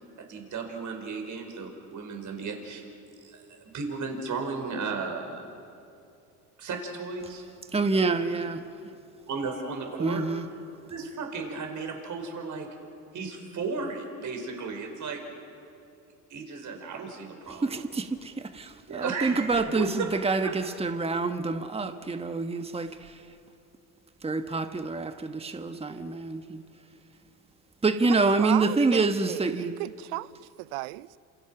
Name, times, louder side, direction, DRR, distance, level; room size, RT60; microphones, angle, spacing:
voice 1, 0.3-2.8 3.2-5.4 6.6-7.5 8.2-8.4 9.3-10.2 10.9-12.7 13.1-15.2 16.3-17.8 18.7-19.8 20.4-20.5, right 4 dB, 40° right, 5.5 m, -35 dB
voice 2, 7.7-8.6 10.0-10.5 17.5-23.4 24.2-26.7 27.8-29.8, right 3 dB, 15° right, 1.4 m, -27 dB
voice 3, 28.4-30.3 30.6-31.1, right 21 dB, 75° right, 0.7 m, -34 dB
28.0 x 28.0 x 6.0 m
supercardioid pair, 90°, 44 cm